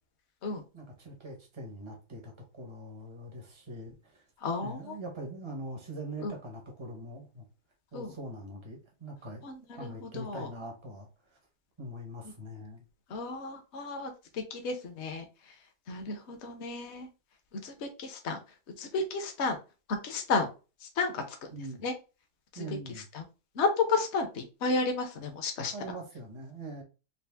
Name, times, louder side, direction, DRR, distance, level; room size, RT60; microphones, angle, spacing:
voice 1, 0.7-4.2 4.6-7.4 7.9-9.4 9.7-11.1 11.8-12.8 21.5-21.8 22.5-23.1 25.7-26.8, right 1 dB, 35° right, 0.4 m, -42 dB
voice 2, 4.4-5.0 6.2-6.3 7.9-8.1 9.4-10.5 13.1-15.2 15.9-17.1 17.6-18.4 18.8-19.6 20.0-20.5 20.8-21.2 21.8-21.9 22.5-22.8 23.1-23.2 23.5-25.7, left 4 dB, 55° left, 0.8 m, -32 dB
4.2 x 2.5 x 3.4 m
omnidirectional pair, 2.2 m